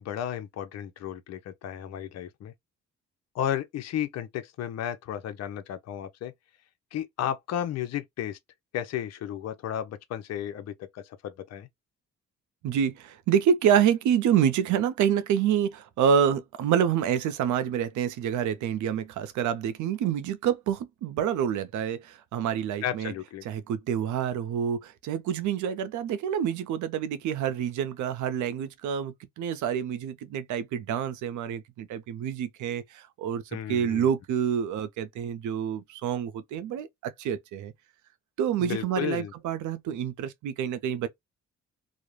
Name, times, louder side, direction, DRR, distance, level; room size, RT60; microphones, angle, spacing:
voice 1, 0.0-2.5 3.3-6.3 6.9-8.4 8.7-11.7 22.8-23.4 33.5-34.1 38.6-39.3, left 10 dB, 60° left, 0.5 m, -33 dB
voice 2, 12.6-23.1 23.4-33.4 33.7-37.7 38.4-41.1, right 8 dB, 75° right, 0.5 m, -27 dB
2.4 x 2.0 x 3.0 m
cardioid pair, 90°, 30 cm